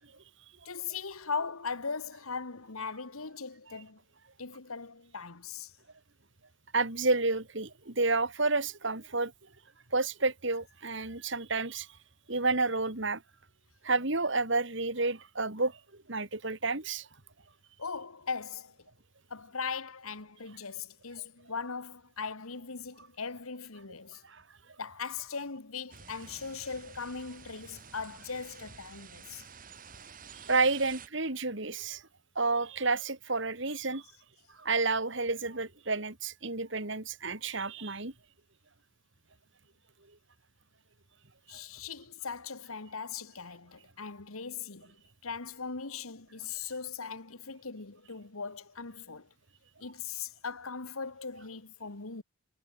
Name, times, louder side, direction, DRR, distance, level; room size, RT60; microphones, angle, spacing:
voice 1, 0.7-4.0 4.4-5.7 17.8-18.9 19.3-24.2 24.8-29.5 41.5-45.0 45.2-49.3 49.8-52.2, left 5 dB, 85° left, 1.7 m, -39 dB
voice 2, 6.7-9.3 9.9-11.9 12.3-13.2 13.8-15.8 16.1-17.1 24.3-24.4 30.3-32.0 32.4-34.0 34.6-38.1 41.5-41.6, right 3 dB, 60° right, 2.5 m, -30 dB
sound 1, 25.9-31.1, right 6 dB, 40° right, 4.1 m, -50 dB
head